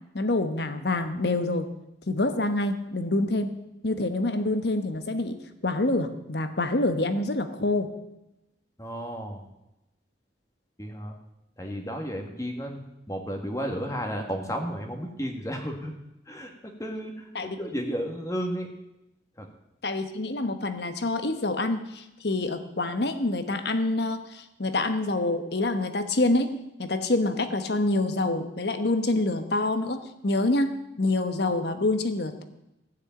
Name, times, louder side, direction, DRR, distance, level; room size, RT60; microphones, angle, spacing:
voice 1, 0.1-1.7 2.1-3.5 3.8-5.4 5.6-7.9 17.3-17.6 19.8-32.4, left 2 dB, 60° left, 9 dB, 1.2 m, -26 dB
voice 2, 8.8-9.4 10.8-11.1 11.6-15.9 16.3-18.7 19.4-19.5, equal, 20° left, 3 dB, 1.6 m, -33 dB
15.0 x 6.5 x 8.7 m, 0.90 s
head